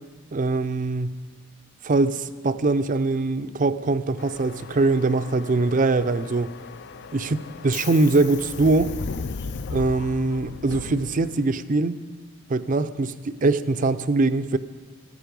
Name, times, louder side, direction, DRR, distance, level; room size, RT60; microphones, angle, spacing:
voice 1, 0.3-1.2 1.8-6.5 7.1-7.3 7.6-8.9 9.7-12.0 12.5-14.6, right 3 dB, 35° right, 12 dB, 0.5 m, -22 dB
Subway metro underground, 4.2-11.6, left 4 dB, 50° left, 0.4 m, -37 dB
14.5 x 14.0 x 5.3 m, 1.5 s
head